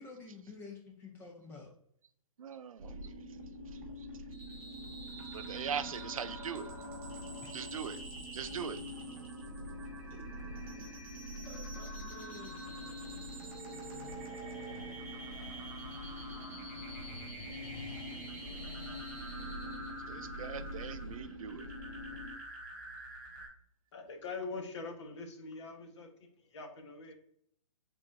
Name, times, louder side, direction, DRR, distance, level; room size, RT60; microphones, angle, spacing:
voice 1, 0.0-1.7 7.4-7.5 11.5-12.5 18.4-18.7, left 4 dB, 10° left, 0 dB, 0.4 m, -50 dB
voice 2, 2.4-3.2 5.3-6.7 7.5-8.0 8.3-8.8 10.7-10.9 20.0-21.7, right 7 dB, 80° right, 12 dB, 0.5 m, -40 dB
sound 1, 2.8-22.3, equal, 35° right, 1.1 m, -45 dB
sound 2, 4.3-23.5, right 2 dB, 15° right, 1.6 m, -48 dB
sound 3, 10.0-21.2, left 4 dB, 75° left, 0.6 m, -54 dB
voice 3, 23.9-27.1, left 3 dB, 55° left, 4 dB, 1.0 m, -43 dB
4.7 x 3.8 x 2.4 m, 0.66 s
hypercardioid pair, 150°, 17 cm